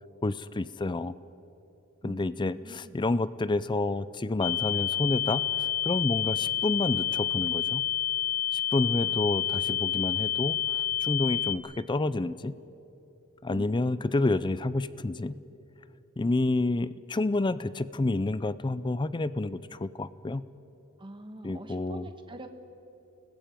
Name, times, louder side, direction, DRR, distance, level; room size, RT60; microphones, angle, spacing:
voice 1, 0.2-1.1 2.0-7.8 8.5-12.5 13.4-15.3 16.2-20.4 21.4-22.1, left 2 dB, 20° left, 16 dB, 0.4 m, -29 dB
voice 2, 2.0-3.0 9.0-9.2 11.3-11.4 21.0-22.5, right 1 dB, 20° right, 6 dB, 1.4 m, -45 dB
sound 1, 4.4-11.6, left 11 dB, 85° left, 0.8 m, -29 dB
29.5 x 20.0 x 5.2 m, 3.0 s
head